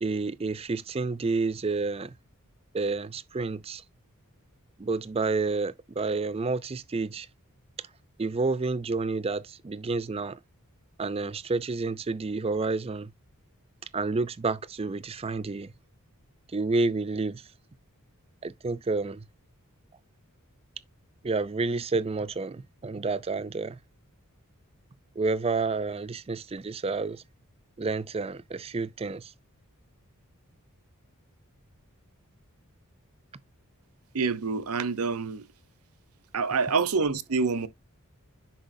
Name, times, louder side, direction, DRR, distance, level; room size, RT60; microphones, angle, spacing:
voice 1, 0.0-2.1 2.7-3.8 4.8-7.3 8.2-10.4 11.0-13.1 13.9-15.7 16.5-17.4 18.4-19.2 21.2-23.8 25.2-27.2 27.8-29.3, right 3 dB, 25° right, 0.4 m, -29 dB
voice 2, 34.1-35.4 36.3-37.7, right 4 dB, 75° right, 0.8 m, -27 dB
10.0 x 4.8 x 2.6 m
head